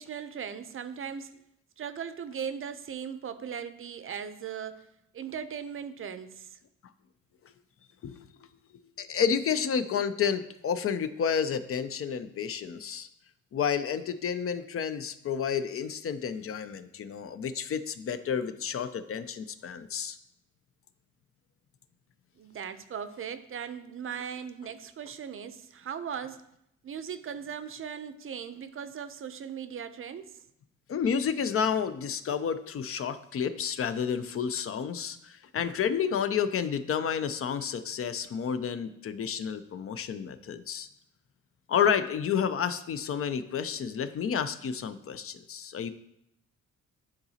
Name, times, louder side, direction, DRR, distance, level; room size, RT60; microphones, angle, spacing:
voice 1, 0.0-1.3 1.8-4.8 5.1-6.6 22.4-26.4 26.8-30.3, right 7 dB, 45° right, 11 dB, 0.6 m, -38 dB
voice 2, 9.0-13.1 13.5-20.2 30.9-40.9 41.7-45.9, left 7 dB, 50° left, 11 dB, 0.5 m, -30 dB
9.6 x 3.9 x 2.8 m, 0.77 s
cardioid pair, 90°, 30 cm